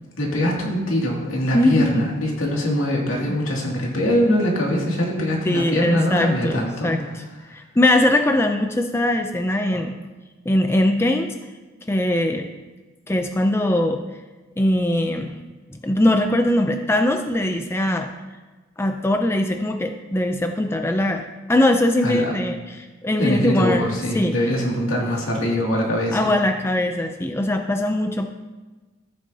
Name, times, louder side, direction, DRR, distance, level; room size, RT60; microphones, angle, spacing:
voice 1, 0.2-7.0 22.0-22.3 23.1-26.3, left 1 dB, 85° left, -2 dB, 2.4 m, -22 dB
voice 2, 1.5-2.0 3.3-3.4 5.4-7.2 7.5-9.9 10.5-11.3 11.9-12.5 13.1-14.0 14.6-15.4 15.7-18.1 18.8-23.8 24.1-24.3 26.1-28.3, left 1 dB, 10° left, 5 dB, 0.4 m, -21 dB
14.5 x 8.9 x 2.8 m, 1.2 s
head